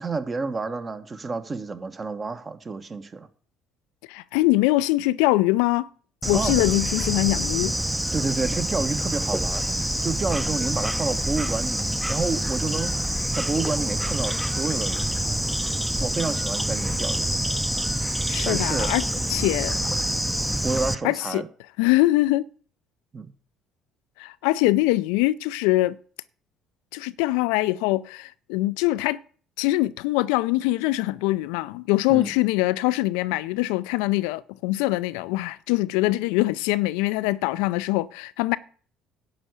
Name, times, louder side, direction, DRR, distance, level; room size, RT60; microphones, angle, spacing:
voice 1, 0.0-3.3 6.3-6.5 8.1-9.6 10.0-12.9 13.3-15.2 16.0-17.4 18.4-18.9 20.6-21.5 23.1-23.3 32.1-32.3, right 4 dB, 30° right, 1.4 m, -29 dB
voice 2, 4.1-5.9 6.3-7.7 18.3-19.9 21.0-21.4 21.8-22.5 24.2-26.0 26.9-29.2 29.6-38.6, left 18 dB, 75° left, 0.4 m, -23 dB
Bird / Insect, 6.2-21.0, right 1 dB, 5° right, 0.7 m, -26 dB
11.5 x 4.8 x 8.2 m
hypercardioid pair, 60°, 0 cm